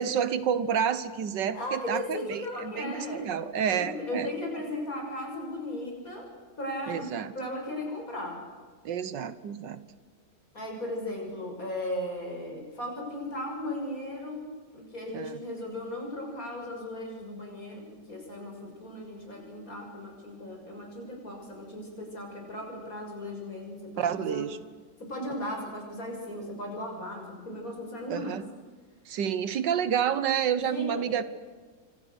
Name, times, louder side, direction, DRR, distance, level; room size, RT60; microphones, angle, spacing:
voice 1, 0.0-4.3 6.9-7.3 8.8-9.8 15.1-15.4 24.0-24.6 28.1-28.4 29.1-31.2, right 8 dB, 80° right, 14 dB, 1.8 m, -29 dB
voice 2, 1.5-3.3 3.7-6.3 6.6-7.1 7.3-8.4 10.5-14.4 14.7-17.8 18.1-24.5 25.0-28.4 30.7-31.1, left 1 dB, 50° left, 1 dB, 6.8 m, -36 dB
27.0 x 25.0 x 6.5 m, 1.5 s
omnidirectional pair, 1.9 m